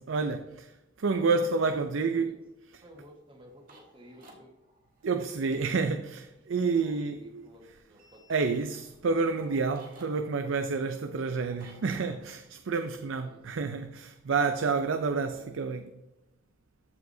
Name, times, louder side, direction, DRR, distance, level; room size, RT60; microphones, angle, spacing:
voice 1, 0.0-2.3 5.0-7.5 8.3-15.8, right 4 dB, 75° right, 0.5 m, -29 dB
voice 2, 1.3-2.3 2.8-4.5 6.4-8.5 13.2-13.5 15.1-15.5, equal, 25° right, 1.5 m, -53 dB
sound 1, 3.0-5.9 8.0-12.0, right 2 dB, 45° right, 1.7 m, -58 dB
14.0 x 4.7 x 2.7 m
head